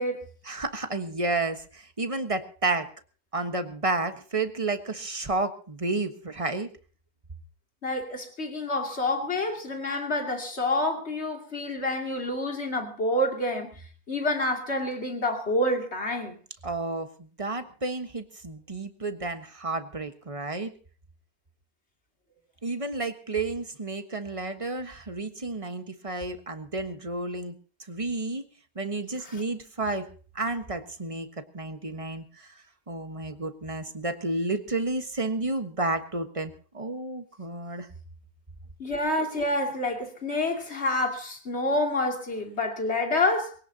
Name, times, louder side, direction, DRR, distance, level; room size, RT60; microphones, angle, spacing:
voice 1, 0.4-2.9 3.3-6.7 16.6-20.7 22.6-27.5 27.9-28.5 28.7-30.1 30.3-32.5 32.9-37.9, right 2 dB, 20° right, 1.3 m, -31 dB
voice 2, 7.8-13.7 14.1-16.4 29.2-29.4 38.8-43.5, left 1 dB, 45° left, 3.0 m, -28 dB
23.0 x 17.5 x 2.9 m
omnidirectional pair, 1.6 m